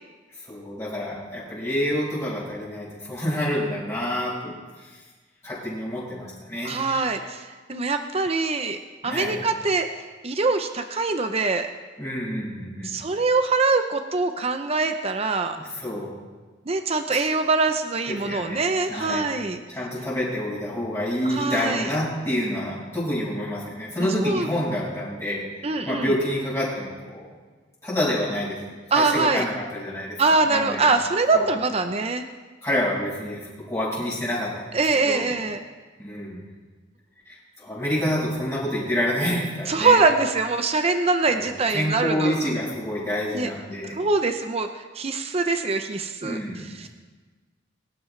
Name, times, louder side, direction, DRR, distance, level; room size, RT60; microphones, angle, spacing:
voice 1, 0.4-4.9 5.4-7.0 9.0-9.4 12.0-13.0 15.6-16.2 17.1-17.2 18.1-18.6 18.9-19.2 19.7-27.3 27.8-30.8 31.3-31.5 32.6-33.4 33.7-34.7 35.0-35.3 36.0-36.4 37.2-40.0 41.3-44.0 46.2-46.7, equal, 15° left, -8 dB, 5.1 m, -28 dB
voice 2, 6.6-8.8 9.0-9.9 10.2-11.7 12.8-15.6 16.7-19.6 21.2-22.0 24.0-24.5 25.6-26.1 28.9-29.4 30.2-32.2 34.7-35.6 39.7-42.5 43.3-43.5 43.9-46.9, right 3 dB, 35° right, 7 dB, 0.7 m, -23 dB
23.5 x 12.0 x 3.3 m, 1.4 s
head